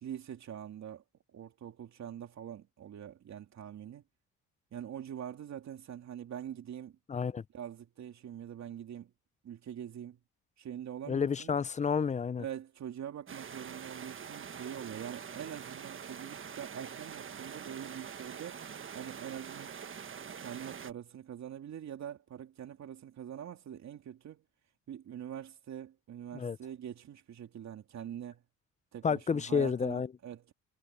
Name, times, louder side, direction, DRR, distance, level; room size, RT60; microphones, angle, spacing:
voice 1, 0.0-1.0 1.3-4.0 4.7-7.0 7.5-9.1 9.4-10.2 10.6-11.5 12.4-18.6 18.9-19.7 20.4-24.4 24.9-28.4 28.9-30.5, right 9 dB, 65° right, 3.2 m, -44 dB
voice 2, 7.1-7.4 11.1-12.4 26.3-26.6 29.0-30.1, left 6 dB, 25° left, 0.5 m, -30 dB
sound 1, 13.3-20.9, right 7 dB, 40° right, 1.4 m, -45 dB
cardioid pair, 90°, 30 cm